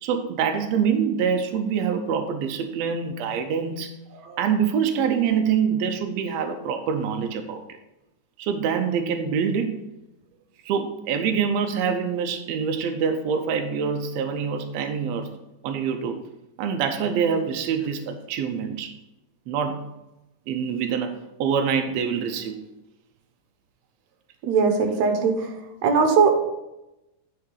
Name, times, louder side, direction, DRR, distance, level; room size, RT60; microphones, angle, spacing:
voice 1, 0.0-3.9 4.4-7.6 8.4-9.8 10.6-15.4 15.6-16.2 16.6-18.9 19.5-19.9 20.5-21.1 21.4-22.6, right 7 dB, 85° right, 5 dB, 1.5 m, -25 dB
voice 2, 24.4-25.5 25.8-26.4, right 5 dB, 65° right, 5 dB, 2.0 m, -20 dB
9.7 x 5.7 x 3.9 m, 0.93 s
omnidirectional pair, 3.8 m